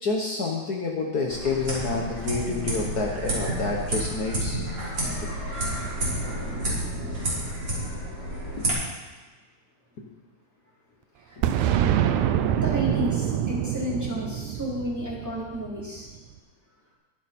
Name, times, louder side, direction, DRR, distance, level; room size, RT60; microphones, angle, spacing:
voice 1, 0.0-4.6 5.4-5.5 8.6-8.7 10.0-10.1, left 4 dB, 75° left, -1 dB, 0.9 m, -28 dB
sound 1, 1.3-8.7, right 1 dB, 35° right, 4.3 m, -30 dB
Boom, 11.4-16.1, right 10 dB, 80° right, 2.1 m, -25 dB
voice 2, 12.6-16.1, equal, 5° right, -7 dB, 3.1 m, -32 dB
22.5 x 7.6 x 4.3 m, 1.3 s
omnidirectional pair, 3.5 m